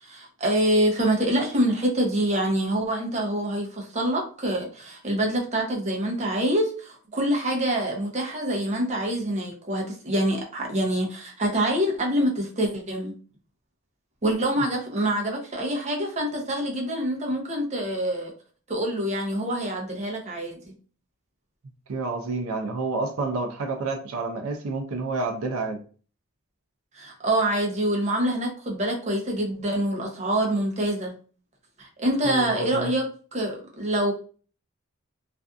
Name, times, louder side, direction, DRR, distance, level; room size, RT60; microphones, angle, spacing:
voice 1, 0.0-13.1 14.2-18.3 18.7-20.6 26.9-31.1 31.8-33.0 33.3-34.1, right 1 dB, 30° right, 0.6 m, -25 dB
voice 2, 21.9-25.8 32.2-32.9, right 3 dB, 80° right, 0.5 m, -29 dB
2.5 x 2.4 x 2.3 m
head